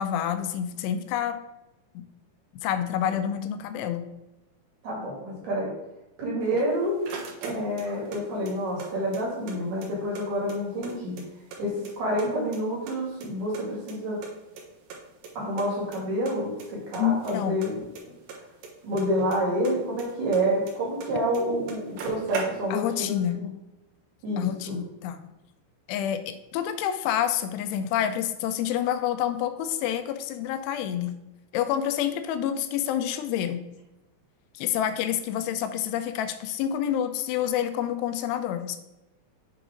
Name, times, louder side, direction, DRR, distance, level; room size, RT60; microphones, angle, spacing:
voice 1, 0.0-1.4 2.0-2.1 2.6-4.1 17.0-17.6 22.7-23.4 24.4-25.2 25.9-31.1 31.5-33.6 34.5-38.8, left 10 dB, 85° left, 10 dB, 2.7 m, -28 dB
voice 2, 4.8-5.7 6.2-7.0 7.4-11.2 11.6-14.2 15.3-17.7 18.1-18.2 18.8-23.5 24.2-24.8, equal, 50° right, -4 dB, 3.3 m, -28 dB
sound 1, 6.5-8.2 8.5-9.6 9.8-9.9 10.2-11.6 11.8-12.6 12.9-14.3 14.6-14.7 14.9-15.0 15.2-15.3 15.6-16.0 16.3-16.7 16.9-19.4 19.6-21.1 21.3-21.4 21.7-22.9, right 5 dB, 70° right, 2.7 m, -39 dB
7.6 x 3.9 x 4.9 m, 0.95 s
omnidirectional pair, 4.7 m